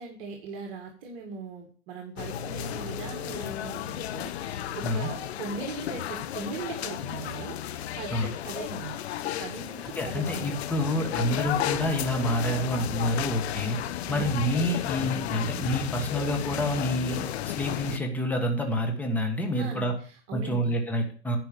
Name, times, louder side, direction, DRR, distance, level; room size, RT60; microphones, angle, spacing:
voice 1, 0.0-7.6 8.0-9.0 9.4-10.6 14.1-14.3 19.6-20.8, right 5 dB, 50° right, 2 dB, 2.0 m, -39 dB
sound 1, 2.2-18.0, left 11 dB, 65° left, 0.9 m, -33 dB
voice 2, 9.9-13.8 14.1-19.9 20.3-21.4, equal, 5° left, 3 dB, 1.5 m, -28 dB
10.0 x 5.2 x 6.7 m, 0.42 s
hypercardioid pair, 140°, 35 cm